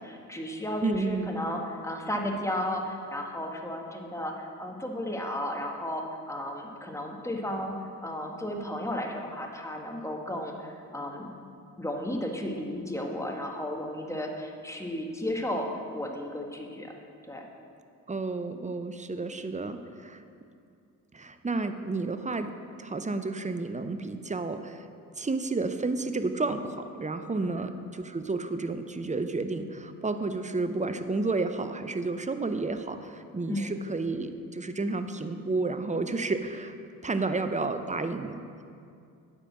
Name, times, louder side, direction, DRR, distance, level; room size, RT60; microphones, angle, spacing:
voice 1, 0.0-7.7 8.0-11.3 11.8-16.9 17.3-17.4 27.4-27.6 33.5-33.7 37.2-37.4, left 1 dB, 5° left, 1 dB, 1.6 m, -34 dB
voice 2, 0.8-1.4 18.1-20.2 21.1-22.5 22.8-24.9 25.2-36.7 37.0-38.4, right 3 dB, 15° right, 9 dB, 0.7 m, -31 dB
9.1 x 5.2 x 7.4 m, 2.4 s
hypercardioid pair, 45°, 42 cm